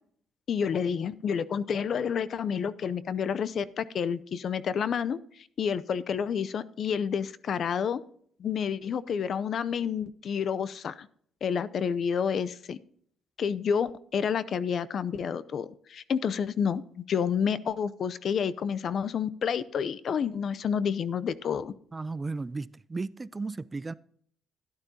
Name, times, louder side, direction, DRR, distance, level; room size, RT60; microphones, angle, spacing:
voice 1, 0.5-5.2 5.6-8.0 8.4-11.1 11.4-12.8 13.4-21.7, left 7 dB, 60° left, 0.5 m, -29 dB
voice 2, 21.9-23.9, right 3 dB, 25° right, 0.3 m, -35 dB
12.5 x 11.5 x 2.8 m
cardioid pair, 90°, 0 cm